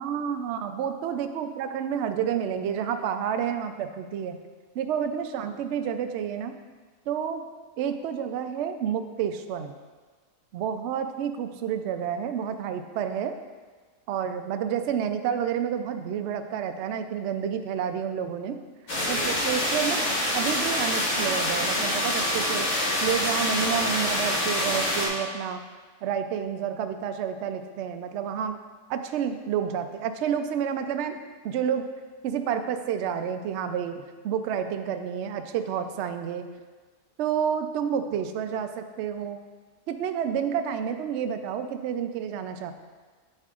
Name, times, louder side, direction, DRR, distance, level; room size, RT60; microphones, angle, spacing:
voice 1, 0.0-4.4 4.7-6.5 7.1-7.5 7.8-9.7 10.5-13.3 14.1-18.6 19.1-20.0 20.3-22.7 23.0-25.6 26.0-28.5 28.9-31.2 31.4-31.9 32.2-36.4 37.2-39.4 39.9-42.7, right 8 dB, 70° right, 8 dB, 0.6 m, -29 dB
sound 1, 18.9-25.1, left 1 dB, 85° left, 2.4 m, -26 dB
9.8 x 6.6 x 2.4 m, 1.4 s
omnidirectional pair, 1.6 m